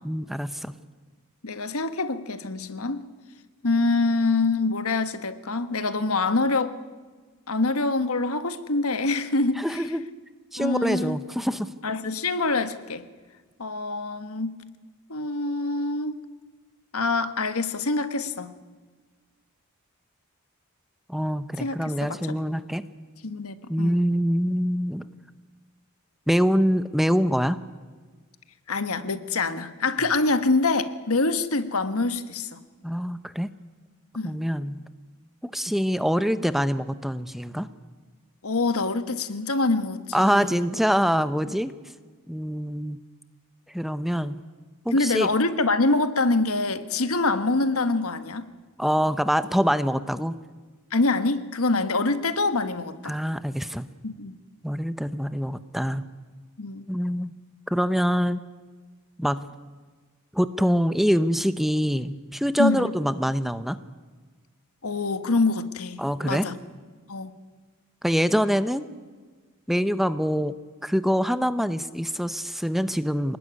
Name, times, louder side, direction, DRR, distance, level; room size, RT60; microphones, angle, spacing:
voice 1, 0.0-0.7 9.6-10.1 10.5-11.7 21.1-22.9 23.7-25.0 26.3-27.6 32.8-33.5 34.2-34.8 35.4-37.7 40.1-41.7 42.3-43.0 43.7-44.4 44.8-45.3 48.8-50.4 53.0-53.9 54.6-56.0 56.9-57.3 57.7-58.4 59.2-59.5 60.3-63.8 66.0-66.5 68.0-68.9 69.7-70.6 70.8-73.4, equal, ahead, 12 dB, 0.7 m, -25 dB
voice 2, 1.4-3.0 3.6-6.8 7.5-9.8 10.6-11.2 11.8-13.1 13.6-14.6 15.1-16.2 16.9-18.5 21.6-21.8 22.1-22.4 23.2-23.9 28.7-32.6 34.1-34.4 38.4-40.6 44.9-48.5 50.9-53.2 54.0-54.4 56.6-56.8 62.6-62.9 64.8-66.6 67.1-67.3, left 3 dB, 75° left, 10 dB, 1.5 m, -25 dB
26.5 x 19.0 x 9.7 m, 1.4 s
head